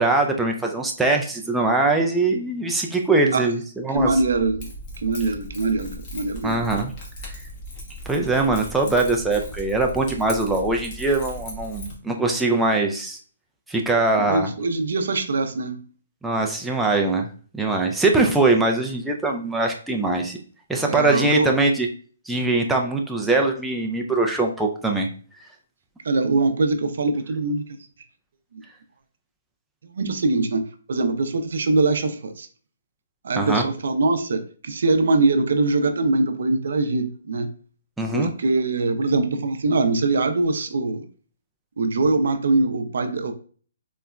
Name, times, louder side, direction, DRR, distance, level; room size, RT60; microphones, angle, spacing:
voice 1, 0.0-4.1 6.4-6.9 8.1-13.2 13.7-14.5 16.2-17.3 17.5-20.4 20.7-21.9 22.3-25.1 33.4-33.6 38.0-38.3, right 2 dB, 5° right, 0 dB, 0.3 m, -22 dB
Keys jangling, 3.9-11.9, equal, 30° left, 0.9 m, -38 dB
voice 2, 3.9-4.7 5.0-6.6 14.3-15.9 20.9-21.5 26.0-27.6 29.8-30.6 30.9-32.5 33.2-37.5 38.1-41.0 41.8-43.3, right 3 dB, 70° right, 8 dB, 0.4 m, -22 dB
3.8 x 2.1 x 2.3 m, 0.42 s
hypercardioid pair, 160°, 0 cm